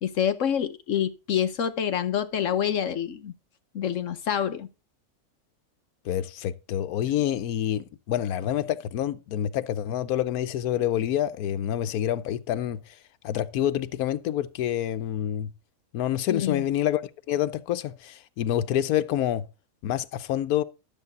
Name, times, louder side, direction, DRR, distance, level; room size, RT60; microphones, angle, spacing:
voice 1, 0.0-3.3 3.7-4.7 16.3-16.7, left 9 dB, 65° left, 1.1 m, -27 dB
voice 2, 6.0-12.9 13.2-15.5 15.9-19.5 19.8-20.6, left 11 dB, 85° left, 1.2 m, -27 dB
12.0 x 7.3 x 4.0 m
omnidirectional pair, 1.5 m